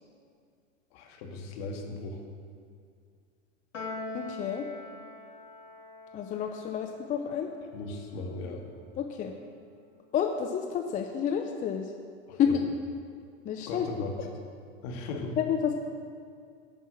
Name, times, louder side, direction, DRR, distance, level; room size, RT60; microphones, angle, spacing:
voice 1, 0.9-2.2 7.7-8.6 12.3-12.6 13.7-14.1 14.8-15.4, left 3 dB, 55° left, 2 dB, 1.9 m, -37 dB
Piano, 3.7-10.3, left 2 dB, 85° left, 1.8 m, -45 dB
voice 2, 4.1-4.7 6.1-7.5 9.0-9.3 10.1-11.9 12.4-12.5 13.4-13.9 15.4-15.7, left 8 dB, 20° left, 4 dB, 0.6 m, -29 dB
10.5 x 5.5 x 7.4 m, 2.3 s
hypercardioid pair, 105°, 37 cm